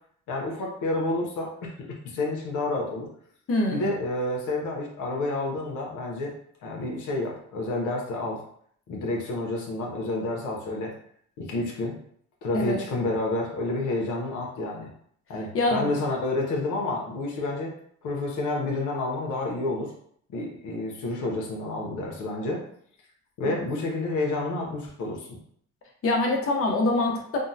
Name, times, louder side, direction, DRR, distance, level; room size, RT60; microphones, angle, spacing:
voice 1, 0.3-3.1 3.7-6.3 6.6-8.4 8.9-10.9 11.4-11.9 12.4-14.9 15.3-17.7 18.0-19.9 20.3-22.6 23.4-25.4, left 2 dB, 80° left, -1 dB, 0.7 m, -29 dB
voice 2, 3.5-3.9 12.5-12.8 15.5-15.9 26.0-27.4, left 2 dB, 45° left, 0 dB, 0.8 m, -24 dB
3.5 x 2.0 x 2.6 m, 0.63 s
cardioid pair, 90°, 30 cm